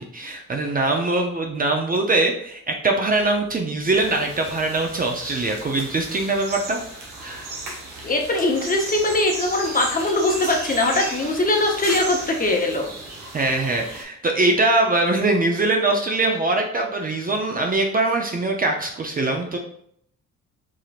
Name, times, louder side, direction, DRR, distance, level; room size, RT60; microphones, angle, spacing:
voice 1, 0.1-6.8 7.2-7.5 13.3-19.6, right 2 dB, 30° right, 2 dB, 0.5 m, -22 dB
sound 1, 3.9-14.0, right 2 dB, 90° right, 1.2 m, -35 dB
voice 2, 8.0-12.9, left 2 dB, 30° left, 1 dB, 0.9 m, -21 dB
4.8 x 2.8 x 2.4 m, 0.66 s
cardioid pair, 90°, 30 cm